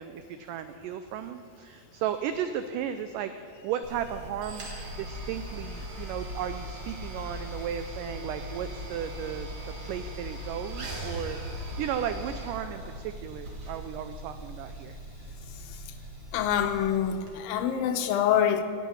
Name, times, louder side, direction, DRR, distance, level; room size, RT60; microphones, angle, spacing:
voice 1, 0.0-4.7 5.0-9.5 9.8-11.4 11.8-15.0, right 9 dB, 90° right, 9 dB, 1.8 m, -35 dB
sound 1, 3.8-17.3, equal, 45° right, 2.5 m, -39 dB
voice 2, 16.3-18.6, left 9 dB, 80° left, 7 dB, 2.3 m, -26 dB
9.1 x 8.4 x 9.4 m, 2.3 s
omnidirectional pair, 4.3 m